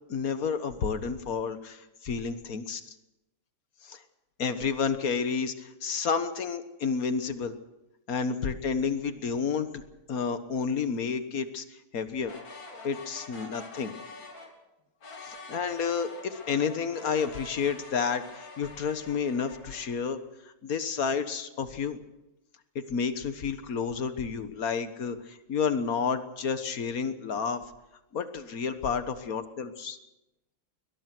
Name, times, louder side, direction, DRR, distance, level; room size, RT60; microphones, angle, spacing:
voice 1, 0.1-2.8 3.8-4.0 4.4-7.5 8.1-9.8 10.1-12.3 12.8-13.9 15.2-20.2 20.6-22.0 22.7-27.6 28.1-30.0, left 6 dB, 50° left, 10 dB, 1.6 m, -30 dB
sound 1, 12.2-14.5 15.0-20.0, left 3 dB, 70° left, 4.0 m, -46 dB
21.5 x 20.5 x 6.1 m, 0.94 s
omnidirectional pair, 2.2 m